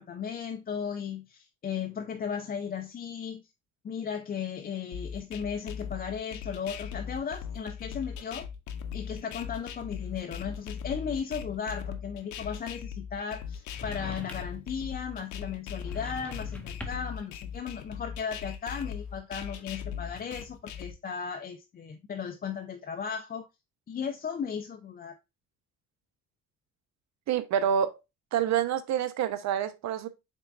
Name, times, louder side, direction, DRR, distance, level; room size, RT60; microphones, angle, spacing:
voice 1, 0.0-3.4 3.8-8.5 8.9-23.5 23.9-25.1, left 7 dB, 30° left, 0.5 m, -36 dB
sound 1, 4.9-20.9, left 7 dB, 75° left, 0.6 m, -39 dB
sound 2, 13.8-14.7 15.8-17.2, left 1 dB, 5° left, 0.8 m, -44 dB
voice 2, 27.3-28.0 28.3-30.1, right 9 dB, 65° right, 0.7 m, -27 dB
4.2 x 3.5 x 2.4 m
supercardioid pair, 80°, 29 cm